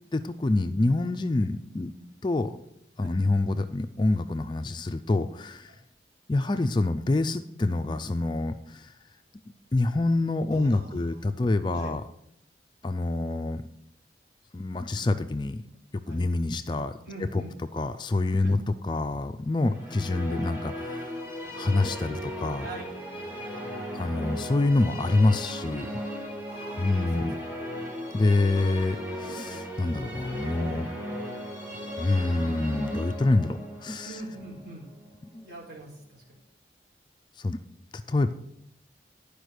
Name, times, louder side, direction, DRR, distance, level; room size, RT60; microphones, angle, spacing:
voice 1, 0.1-1.9 2.2-2.6 3.0-5.7 6.3-8.9 9.7-12.0 12.8-13.6 14.5-15.6 15.9-17.4 17.7-21.2 21.5-22.7 23.9-26.0 26.8-27.3 28.1-30.9 32.0-34.2 35.3-35.4 37.4-37.6 38.1-38.3, left 2 dB, 25° left, 9 dB, 0.4 m, -26 dB
voice 2, 10.5-11.1 11.7-11.9 16.1-16.2 17.0-17.5 18.4-18.5 22.6-22.9 26.5-27.3 27.7-27.8 34.0-34.8 35.4-36.2, right 2 dB, 55° right, -4 dB, 3.9 m, -43 dB
sound 1, 19.6-35.6, equal, 10° right, 1.6 m, -37 dB
11.0 x 5.1 x 6.4 m, 0.77 s
head